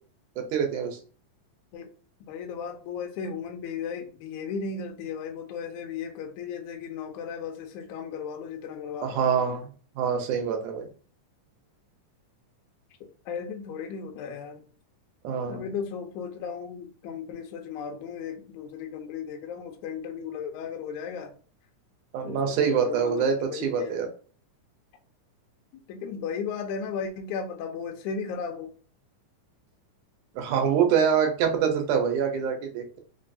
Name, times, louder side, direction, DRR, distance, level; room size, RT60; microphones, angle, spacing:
voice 1, 0.4-1.0 9.0-9.7 10.0-10.9 15.2-15.7 22.1-24.1 30.4-33.0, right 7 dB, 75° right, 2.1 m, -25 dB
voice 2, 2.3-9.3 13.3-14.6 15.5-21.3 22.2-24.0 25.7-28.7, left 6 dB, 80° left, 1.8 m, -35 dB
5.2 x 2.4 x 2.6 m
omnidirectional pair, 3.8 m